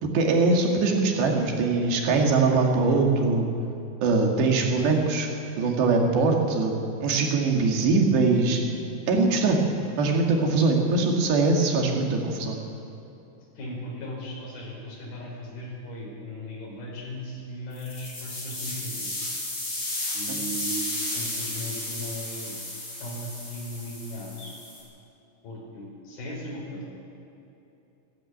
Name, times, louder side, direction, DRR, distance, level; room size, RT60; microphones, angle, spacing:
voice 1, 0.0-3.5 4.0-5.3 5.6-6.7 7.0-8.6 9.1-9.6 10.0-12.6, right 3 dB, 65° right, 1 dB, 4.3 m, -22 dB
voice 2, 13.6-19.1 20.1-22.6 23.0-24.5 25.4-26.8, equal, 50° left, -4 dB, 7.3 m, -37 dB
sound 1, 17.7-24.8, left 1 dB, 25° left, 7.6 m, -33 dB
28.5 x 12.0 x 8.8 m, 2.9 s
omnidirectional pair, 5.5 m